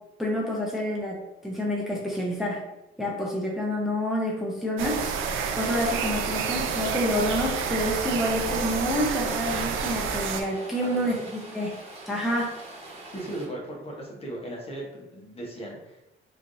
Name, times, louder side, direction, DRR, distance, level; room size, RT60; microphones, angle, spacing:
voice 1, 0.2-1.2 1.4-2.6 3.0-5.0 5.3-11.7 12.1-12.5, equal, ahead, -3 dB, 0.7 m, -28 dB
sound 1, 4.8-10.4, right 6 dB, 90° right, 0.4 m, -29 dB
Rain, 5.4-13.4, right 2 dB, 30° right, 1.2 m, -44 dB
voice 2, 10.8-11.2 13.1-16.0, right 1 dB, 30° left, -2 dB, 0.9 m, -37 dB
3.1 x 2.5 x 2.6 m, 0.95 s
cardioid pair, 90°, 20 cm